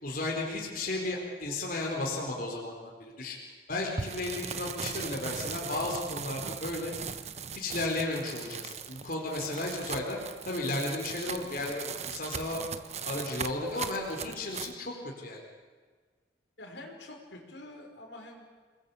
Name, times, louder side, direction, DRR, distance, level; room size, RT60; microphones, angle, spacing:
voice 1, 0.0-3.4 3.7-6.9 7.5-10.2 10.4-12.7 13.0-15.4, left 2 dB, 50° left, -1 dB, 4.3 m, -34 dB
sound 1, 4.0-14.8, right 6 dB, 40° right, 1.1 m, -39 dB
voice 2, 16.6-18.4, left 1 dB, 80° left, 2 dB, 5.2 m, -46 dB
28.0 x 20.5 x 8.4 m, 1.5 s
head